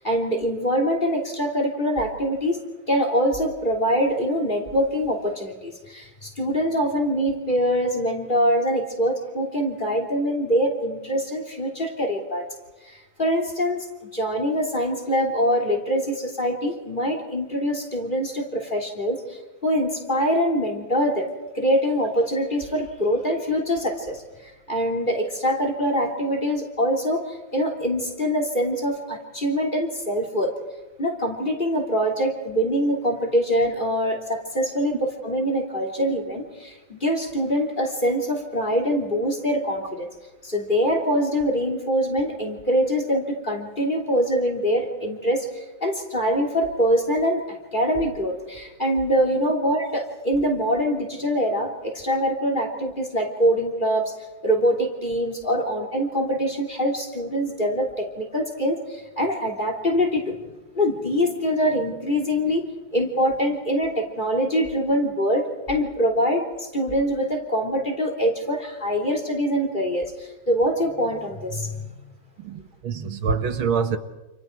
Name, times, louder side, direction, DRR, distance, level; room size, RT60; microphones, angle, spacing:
voice 1, 0.0-2.6 2.9-12.4 12.8-13.9 14.1-21.3 21.5-30.5 31.0-35.0 35.2-40.1 40.4-54.1 54.4-60.3 60.7-62.6 62.9-71.8, equal, 25° left, 3.5 m, -24 dB
voice 2, 72.4-74.0, right 6 dB, 80° right, 2.2 m, -25 dB
29.5 x 28.5 x 4.7 m
omnidirectional pair, 2.2 m